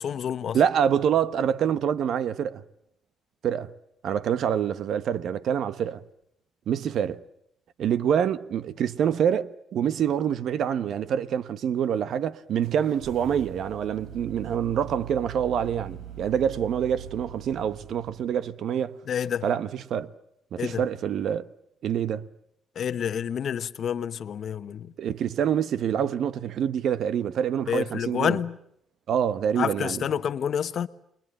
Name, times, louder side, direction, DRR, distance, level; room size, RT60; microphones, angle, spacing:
voice 1, 0.0-0.6 19.1-19.4 20.6-20.8 22.8-24.9 27.7-28.6 29.6-30.9, left 8 dB, 60° left, 1.0 m, -28 dB
voice 2, 0.5-2.6 3.4-3.7 4.0-6.0 6.7-7.2 7.8-18.9 19.4-20.1 20.5-21.5 21.8-22.3 25.0-28.4 29.1-30.1, right 8 dB, 70° right, 1.0 m, -26 dB
sound 1, 12.6-18.5, right 8 dB, 85° right, 4.7 m, -42 dB
29.0 x 22.0 x 8.9 m
cardioid pair, 90°, 0 cm